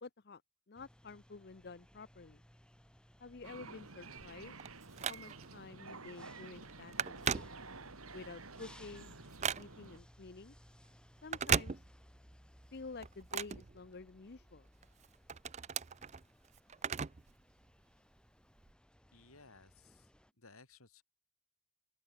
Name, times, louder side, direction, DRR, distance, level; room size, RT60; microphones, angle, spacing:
voice 1, 0.0-0.4 0.7-2.4 3.2-4.5 5.1-7.5 8.1-9.2 9.5-10.6 11.2-11.8 12.7-14.7, left 4 dB, 50° left, 0.6 m, -50 dB
sound 1, 0.7-20.3, equal, 5° left, 1.9 m, -62 dB
sound 2, 3.4-10.0, right 4 dB, 90° right, 3.5 m, -51 dB
Telephone, 4.2-5.6 6.1-6.3 6.6-8.1 8.5-10.0 11.2-12.3 12.6-14.4 14.8-17.3 17.6-17.7 18.6-18.7, right 7 dB, 30° right, 0.5 m, -38 dB
voice 2, 19.1-20.1 20.4-21.0, left 3 dB, 90° left, 5.4 m, -60 dB
open air
head